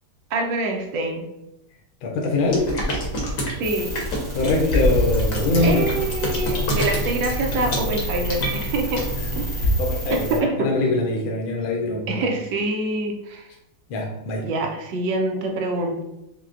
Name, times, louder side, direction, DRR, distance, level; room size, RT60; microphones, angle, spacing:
voice 1, 0.3-1.2 3.6-3.9 5.6-9.0 9.4-9.5 10.1-10.7 12.1-13.5 14.4-16.0, right 2 dB, 70° right, 2 dB, 1.1 m, -25 dB
voice 2, 2.0-2.7 4.3-5.8 9.2-12.3 13.9-14.5, left 2 dB, 75° left, -1 dB, 1.3 m, -23 dB
sound 1, 2.5-9.7, equal, 55° left, 0.9 m, -26 dB
sound 2, 3.6-10.4, equal, 50° right, 1.8 m, -30 dB
5.8 x 2.1 x 2.4 m, 0.89 s
omnidirectional pair, 2.4 m